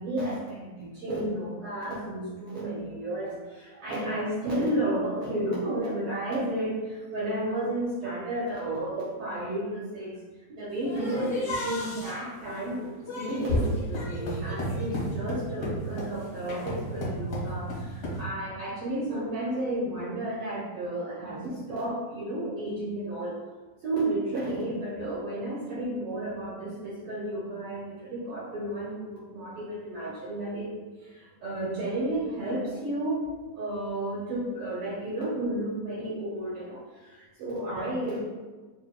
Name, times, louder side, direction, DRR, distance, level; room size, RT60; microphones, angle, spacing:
voice 1, 0.0-10.1 10.5-12.8 13.1-23.3 23.8-30.7 31.0-33.3 33.5-38.2, right 1 dB, 65° right, -6 dB, 1.5 m, -32 dB
sound 1, 10.8-18.2, equal, 80° left, 0.8 m, -33 dB
7.6 x 2.6 x 2.2 m, 1.3 s
omnidirectional pair, 3.4 m